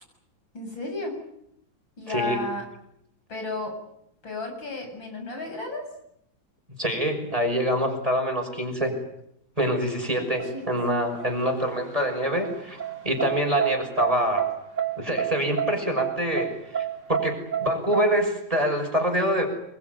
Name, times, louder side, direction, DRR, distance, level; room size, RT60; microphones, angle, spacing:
voice 1, 0.5-1.2 2.0-2.7 3.3-3.8 4.2-5.8 9.9-10.7, left 2 dB, 80° left, 3 dB, 8.8 m, -33 dB
voice 2, 2.1-2.4 6.8-8.9 9.6-14.5 15.0-19.6, equal, 15° right, 3 dB, 6.1 m, -25 dB
sound 1, 10.4-18.0, right 9 dB, 40° right, 2.8 m, -30 dB
28.0 x 22.0 x 9.5 m, 0.77 s
omnidirectional pair, 2.1 m